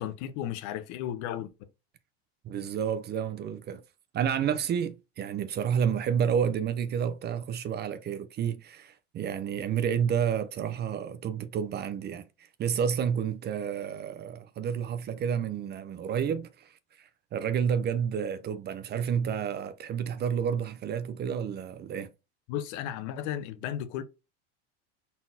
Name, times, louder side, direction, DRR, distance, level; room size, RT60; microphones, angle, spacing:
voice 1, 0.0-1.5 22.5-24.0, left 11 dB, 60° left, 0.9 m, -34 dB
voice 2, 2.4-3.8 4.1-12.3 12.6-22.1, right 8 dB, 30° right, 0.5 m, -30 dB
4.2 x 3.9 x 2.6 m
supercardioid pair, 120°, 34 cm